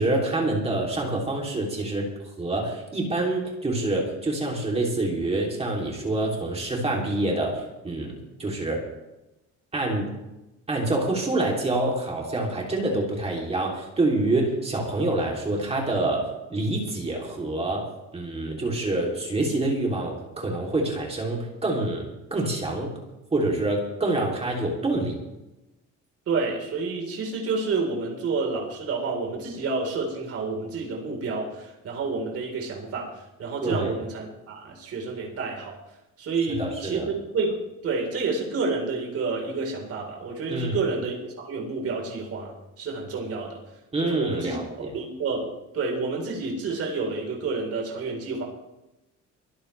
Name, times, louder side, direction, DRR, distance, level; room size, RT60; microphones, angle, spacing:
voice 1, 0.0-2.0 2.4-8.8 9.7-10.1 10.7-16.2 16.5-17.8 18.1-22.0 22.3-23.0 23.3-25.2 33.6-33.9 36.6-37.1 40.5-40.8 43.9-44.9, right 2 dB, 20° right, -1 dB, 3.1 m, -26 dB
voice 2, 26.3-33.1 33.4-35.8 36.2-37.5 37.8-42.5 42.8-43.6 44.0-45.5 45.7-48.4, right 4 dB, 55° right, 0 dB, 4.2 m, -29 dB
24.0 x 13.5 x 3.4 m, 0.96 s
cardioid pair, 175°, 29 cm